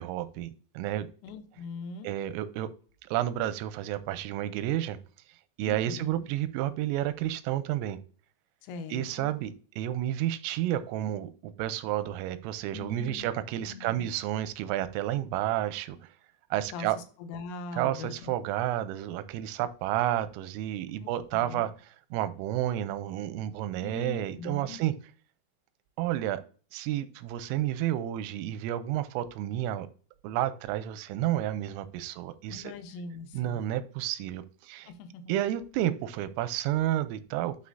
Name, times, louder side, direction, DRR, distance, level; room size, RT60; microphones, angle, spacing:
voice 1, 0.0-1.1 2.0-2.7 3.1-5.0 5.6-8.0 8.9-16.0 16.5-17.0 17.7-21.7 22.1-24.9 26.0-26.4 26.7-29.9 30.2-32.7 33.3-34.9 35.3-37.6, right 13 dB, 90° right, 13 dB, 3.2 m, -31 dB
voice 2, 1.2-2.1 5.6-6.3 8.6-9.3 12.7-13.3 13.6-14.1 16.7-18.3 21.0-21.7 23.8-24.8 32.5-33.6 34.9-35.4, left 4 dB, 90° left, 8 dB, 3.6 m, -41 dB
11.5 x 4.7 x 2.7 m, 0.39 s
omnidirectional pair, 5.8 m